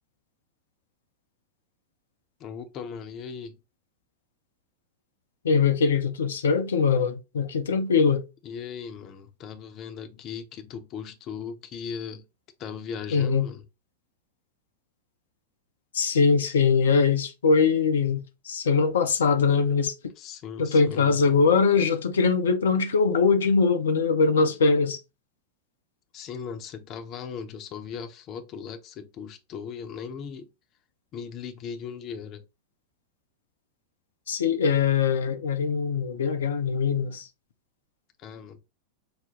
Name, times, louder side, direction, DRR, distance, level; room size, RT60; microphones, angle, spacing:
voice 1, 2.4-3.6 8.4-12.3 12.6-13.6 20.2-21.2 26.1-30.5 31.1-32.4 38.2-38.6, left 6 dB, 35° left, 0.8 m, -38 dB
voice 2, 5.4-8.2 13.1-13.5 15.9-19.9 20.6-25.0 34.3-37.3, left 5 dB, 65° left, 0.7 m, -22 dB
5.9 x 2.2 x 3.7 m
figure-of-eight pair, 90°, 0 cm